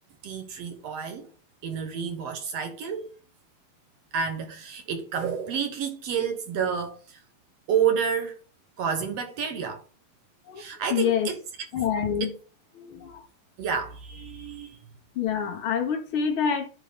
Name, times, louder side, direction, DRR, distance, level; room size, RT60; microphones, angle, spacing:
voice 1, 0.2-1.3 1.6-3.1 4.1-7.2 7.7-8.4 8.8-9.8 10.6-11.4 12.2-12.4 13.6-14.8, right 7 dB, 70° right, 1.6 m, -29 dB
voice 2, 10.9-11.3 11.7-12.3 12.7-13.3 15.1-16.7, left 8 dB, 60° left, 1.5 m, -27 dB
11.5 x 3.9 x 5.1 m
omnidirectional pair, 4.1 m